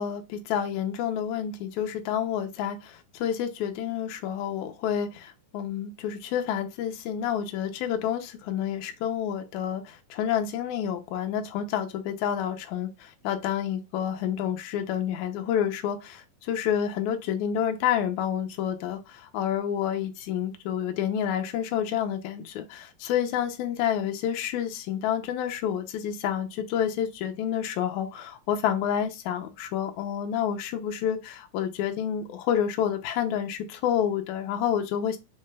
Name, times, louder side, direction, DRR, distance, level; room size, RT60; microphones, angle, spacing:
voice 1, 0.0-35.2, left 9 dB, 90° left, 1.7 m, -29 dB
5.7 x 2.2 x 3.2 m
omnidirectional pair, 4.1 m